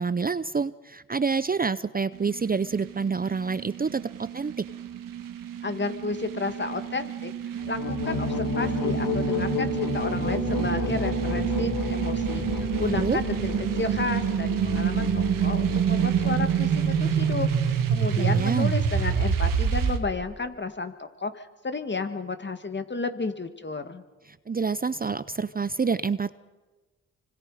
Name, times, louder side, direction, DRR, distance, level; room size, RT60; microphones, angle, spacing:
voice 1, 0.0-4.7 12.8-13.2 18.2-18.7 24.5-26.3, right 5 dB, 30° right, 16 dB, 0.6 m, -27 dB
sound 1, 2.1-20.0, right 8 dB, 90° right, 1.6 m, -28 dB
voice 2, 5.6-7.3 7.7-24.0, left 3 dB, 35° left, 8 dB, 2.0 m, -32 dB
sound 2, 7.6-18.2, left 4 dB, 80° left, 2.9 m, -31 dB
26.5 x 25.0 x 5.0 m, 1.2 s
supercardioid pair, 50°, 32 cm